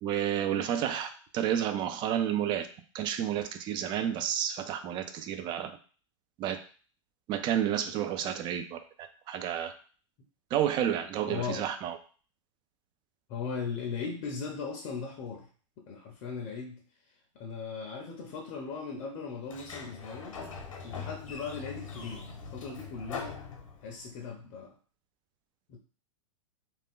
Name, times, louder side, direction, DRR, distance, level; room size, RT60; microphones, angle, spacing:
voice 1, 0.0-2.7 2.9-5.8 6.4-6.6 7.3-8.8 9.3-9.7 10.5-12.0, right 10 dB, 30° right, 8 dB, 0.3 m, -30 dB
voice 2, 11.3-11.7 13.3-15.5 15.8-16.8 17.3-20.4 20.8-23.4 23.8-24.7 25.7-25.8, left 5 dB, 40° left, 1 dB, 0.6 m, -38 dB
Sliding door, 19.4-24.2, left 5 dB, 90° left, 0.8 m, -42 dB
2.5 x 2.2 x 3.5 m, 0.40 s
hypercardioid pair, 125°, 17 cm